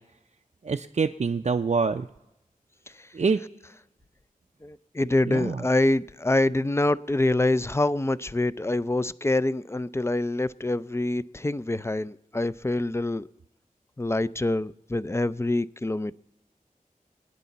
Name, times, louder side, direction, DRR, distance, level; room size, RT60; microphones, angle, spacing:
voice 1, 0.6-2.1 3.1-3.4 5.3-5.6, right 4 dB, 50° right, 0.5 m, -25 dB
voice 2, 4.6-13.3 14.0-16.1, left 2 dB, 20° left, 0.4 m, -25 dB
26.5 x 9.2 x 4.1 m
wide cardioid pair, 55°, 15 cm